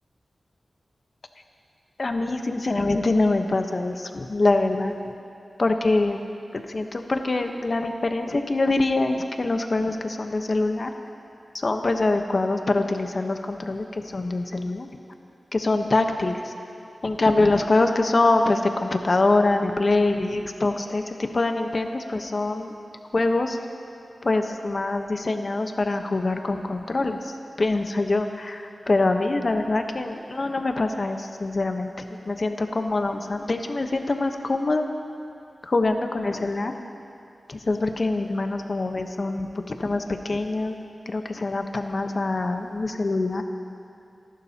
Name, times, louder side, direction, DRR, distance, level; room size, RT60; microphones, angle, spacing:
voice 1, 2.0-5.0 5.6-6.2 6.5-10.9 11.5-14.9 15.5-16.5 17.0-21.0 21.3-22.7 23.1-23.6 24.2-31.9 32.3-34.9 35.6-36.7 37.5-40.8 41.1-43.4, left 2 dB, 50° left, 5 dB, 1.0 m, -24 dB
28.5 x 11.5 x 2.9 m, 2.6 s
wide cardioid pair, 70°, 0 cm